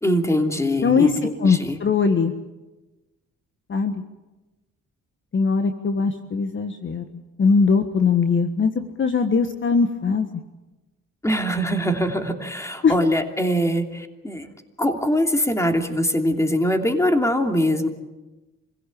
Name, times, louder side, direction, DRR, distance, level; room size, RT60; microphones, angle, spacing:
voice 1, 0.0-1.8 11.2-14.5 14.8-17.9, equal, 10° left, 4 dB, 2.9 m, -22 dB
voice 2, 0.8-2.3 3.7-4.0 5.3-7.0 7.4-8.7 9.0-10.3 12.8-12.9, left 5 dB, 40° left, 7 dB, 1.6 m, -20 dB
27.0 x 16.5 x 8.7 m, 1.1 s
cardioid pair, 90°, 30 cm